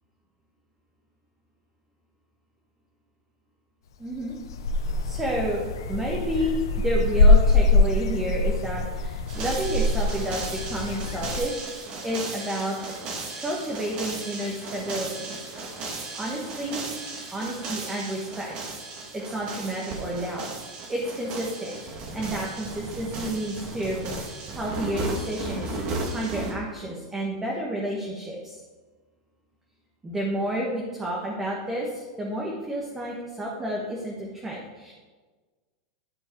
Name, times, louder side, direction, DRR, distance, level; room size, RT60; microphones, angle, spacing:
voice 1, 4.0-4.3 5.0-5.6 5.9-12.9 13.4-15.4 16.1-16.9 17.3-18.5 19.1-20.5 20.9-24.1 24.5-25.8 26.1-28.6 30.0-34.9, right 1 dB, 15° right, -2 dB, 1.5 m, -30 dB
sound 1, 4.1-11.4, left 2 dB, 85° left, 0.8 m, -23 dB
sound 2, 9.3-26.5, right 2 dB, 45° right, 1.8 m, -35 dB
12.0 x 4.6 x 4.6 m, 1.4 s
supercardioid pair, 130°, 2 cm